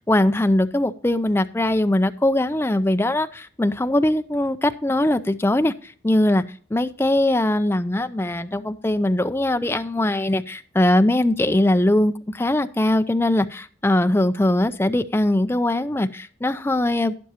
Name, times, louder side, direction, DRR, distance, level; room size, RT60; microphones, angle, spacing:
voice 1, 0.1-5.7 6.0-6.4 6.7-17.2, left 1 dB, 10° left, 11 dB, 0.4 m, -21 dB
12.0 x 10.0 x 2.8 m, 0.43 s
head